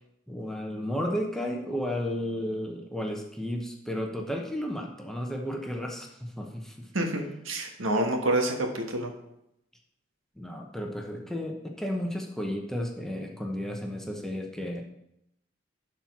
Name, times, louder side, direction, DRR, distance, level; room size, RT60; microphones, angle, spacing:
voice 1, 0.3-6.9 10.4-14.8, equal, ahead, 1 dB, 0.9 m, -33 dB
voice 2, 6.9-9.1, right 1 dB, 80° right, 3 dB, 1.5 m, -28 dB
11.0 x 4.5 x 6.0 m, 0.81 s
head